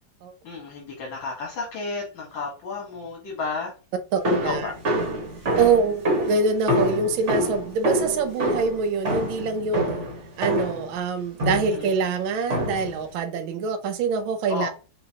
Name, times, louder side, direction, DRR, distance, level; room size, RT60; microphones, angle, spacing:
voice 1, 0.4-3.7 4.4-4.7 11.7-12.0 14.5-14.7, left 4 dB, 70° left, 2.0 m, -32 dB
voice 2, 4.1-4.7 5.6-9.8 10.4-14.7, right 4 dB, 80° right, 1.5 m, -25 dB
sound 1, 4.2-10.9 11.4-11.9 12.5-13.0, equal, 40° right, 1.5 m, -26 dB
5.5 x 3.3 x 2.7 m
omnidirectional pair, 2.2 m